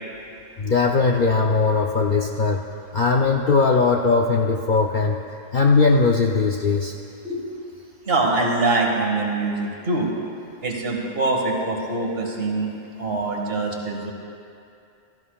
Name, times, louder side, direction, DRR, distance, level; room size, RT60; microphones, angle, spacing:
voice 1, 0.6-2.6 2.9-5.2 5.5-6.9, left 4 dB, 55° left, 1 dB, 0.6 m, -19 dB
voice 2, 8.0-10.1 10.6-12.7 13.0-14.1, right 2 dB, 55° right, 0 dB, 1.6 m, -24 dB
16.5 x 13.5 x 2.3 m, 2.5 s
omnidirectional pair, 1.3 m